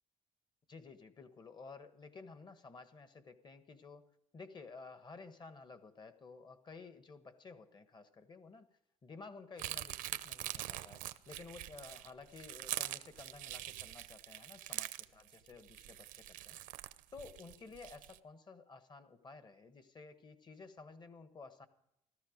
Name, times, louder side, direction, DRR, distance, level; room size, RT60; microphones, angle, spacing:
voice 1, 0.7-4.1 4.3-8.7 9.0-16.6 17.1-21.7, left 4 dB, 35° left, 10 dB, 1.4 m, -53 dB
sound 1, 9.6-18.2, right 15 dB, 80° right, 0.7 m, -44 dB
15.5 x 13.5 x 5.2 m, 0.79 s
cardioid pair, 110°, 14 cm